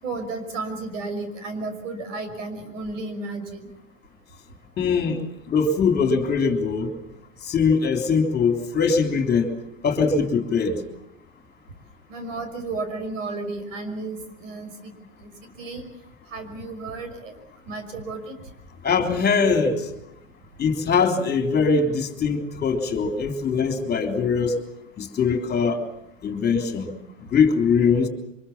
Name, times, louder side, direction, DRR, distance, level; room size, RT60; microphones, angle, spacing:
voice 1, 0.0-3.7 12.1-14.9 15.2-15.9 16.3-17.3 17.7-18.3, right 3 dB, 75° right, 8 dB, 5.9 m, -33 dB
voice 2, 4.8-6.9 7.4-9.5 9.8-10.8 18.8-19.9 20.6-24.6 25.0-25.8 26.2-26.9 27.3-28.1, left 5 dB, 25° left, 5 dB, 3.5 m, -22 dB
24.5 x 22.0 x 7.3 m, 0.83 s
hypercardioid pair, 110°, 38 cm